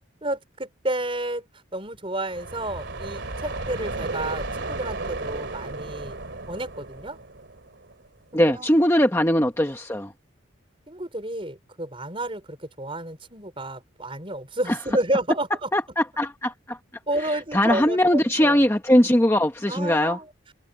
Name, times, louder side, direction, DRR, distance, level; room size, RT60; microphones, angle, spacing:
voice 1, 0.2-1.4 1.7-6.2 6.5-7.2 8.3-8.7 10.9-15.7 17.1-18.6 19.7-20.3, right 1 dB, 25° right, 4.8 m, -30 dB
sound 1, 2.3-8.1, right 2 dB, 60° right, 2.9 m, -34 dB
voice 2, 8.3-10.1 14.7-14.8 15.7-16.8 17.5-20.2, equal, 10° left, 1.0 m, -20 dB
head